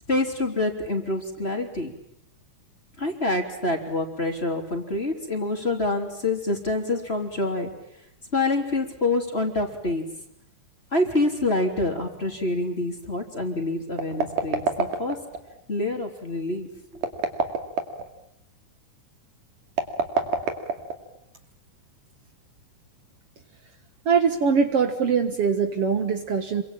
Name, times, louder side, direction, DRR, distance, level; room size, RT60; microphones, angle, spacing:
voice 1, 0.1-1.9 3.0-7.7 8.3-10.1 10.9-15.2 15.7-17.1, left 2 dB, 20° left, 3 dB, 3.4 m, -26 dB
sound 1, 13.9-15.4 16.9-18.1 19.7-21.2, right 5 dB, 90° right, 4.0 m, -26 dB
voice 2, 24.1-26.6, right 6 dB, 55° right, 7 dB, 2.4 m, -22 dB
27.5 x 24.5 x 8.8 m, 0.78 s
omnidirectional pair, 3.5 m